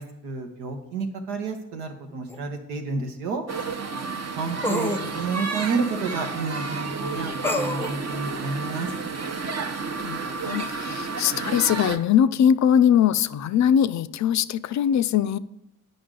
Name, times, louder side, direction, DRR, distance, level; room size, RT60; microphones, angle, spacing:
voice 1, 0.0-3.4 4.4-8.9, right 4 dB, 85° right, 5 dB, 0.9 m, -30 dB
sound 1, 2.3-2.4 4.6-5.1 7.4-8.0, left 1 dB, 5° left, 0.7 m, -26 dB
sound 2, 3.5-12.0, right 4 dB, 45° right, 0.9 m, -31 dB
voice 2, 10.0-15.4, left 9 dB, 50° left, 14 dB, 0.4 m, -21 dB
8.7 x 5.2 x 3.7 m, 0.87 s
hypercardioid pair, 40°, 37 cm